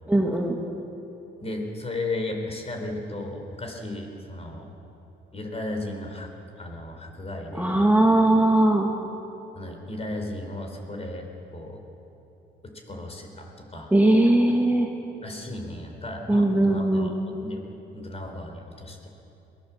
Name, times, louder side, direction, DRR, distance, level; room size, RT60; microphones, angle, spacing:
voice 1, 0.1-0.5 7.5-8.9 13.9-14.9 16.3-17.2, right 1 dB, 10° right, 0 dB, 1.8 m, -20 dB
voice 2, 1.4-4.7 5.3-6.3 6.6-7.8 9.5-11.8 12.9-13.9 15.2-17.6 17.9-19.1, left 2 dB, 30° left, 3 dB, 4.3 m, -35 dB
22.0 x 18.0 x 7.4 m, 3.0 s
cardioid pair, 90°, 20 cm